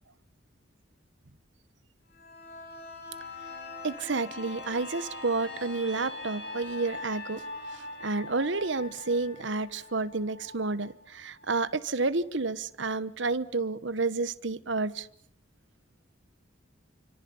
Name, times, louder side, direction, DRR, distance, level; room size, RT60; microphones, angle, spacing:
sound 1, 2.1-11.7 12.1-12.2, left 2 dB, 50° left, 7.2 m, -42 dB
voice 1, 3.8-7.4 8.0-15.1, right 3 dB, 70° right, 1.2 m, -30 dB
28.5 x 25.5 x 7.1 m
head